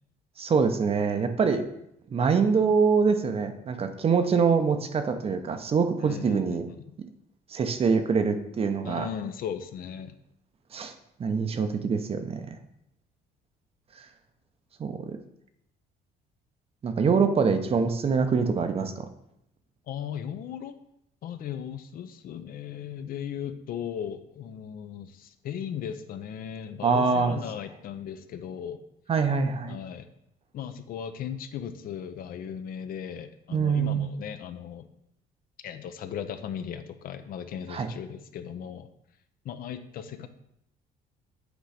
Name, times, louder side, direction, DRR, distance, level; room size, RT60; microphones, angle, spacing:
voice 1, 0.4-1.7 2.1-6.7 7.5-9.1 10.7-10.9 11.2-12.5 14.8-15.2 16.8-19.1 26.8-27.4 29.1-29.8 33.5-34.2 37.7-37.9, right 5 dB, 35° right, 8 dB, 0.6 m, -24 dB
voice 2, 6.0-6.8 8.8-10.2 19.9-20.8 21.2-28.8 29.7-30.1 30.5-34.9 35.6-38.9 39.4-40.3, left 8 dB, 60° left, 9 dB, 0.6 m, -37 dB
8.2 x 3.1 x 4.9 m, 0.77 s
cardioid pair, 110°, 17 cm